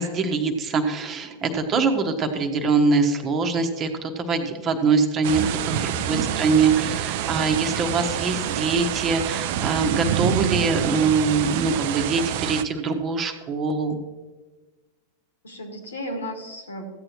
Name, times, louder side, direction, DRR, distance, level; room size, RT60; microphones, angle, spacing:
voice 1, 0.0-5.4 5.7-14.0, right 4 dB, 30° right, 5 dB, 1.2 m, -23 dB
sound 1, 5.2-12.6, right 10 dB, 50° right, 0.5 m, -27 dB
voice 2, 5.4-6.8 15.4-16.9, equal, 70° left, 5 dB, 1.9 m, -36 dB
15.0 x 9.0 x 3.0 m, 1.2 s
figure-of-eight pair, 90°, 0 cm